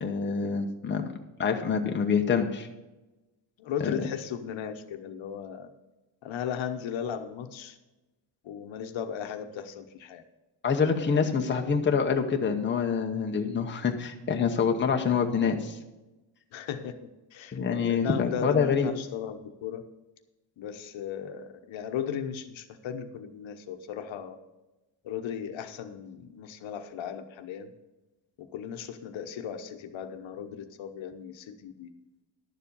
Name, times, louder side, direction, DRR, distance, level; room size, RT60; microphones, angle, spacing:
voice 1, 0.0-1.0 1.4-2.7 3.8-3.9 10.6-15.8 17.5-18.9, left 6 dB, 25° left, 3 dB, 0.9 m, -26 dB
voice 2, 3.6-5.7 6.2-7.8 8.4-10.2 11.0-11.3 16.5-17.6 17.9-19.8 20.6-24.4 25.0-27.7 28.4-31.9, left 8 dB, 75° left, 7 dB, 1.0 m, -36 dB
11.5 x 7.3 x 5.4 m, 1.1 s
wide cardioid pair, 175°, 47 cm